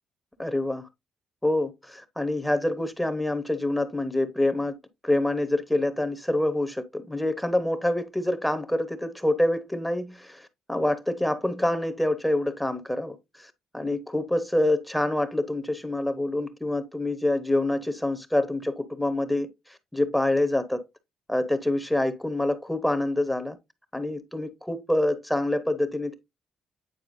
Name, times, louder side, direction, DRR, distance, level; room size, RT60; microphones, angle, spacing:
voice 1, 0.4-0.9 1.4-4.8 5.0-20.8 21.3-23.6 23.9-26.1, left 1 dB, 5° left, 1.0 m, -26 dB
9.0 x 4.5 x 2.6 m
cardioid pair, 90°, 0 cm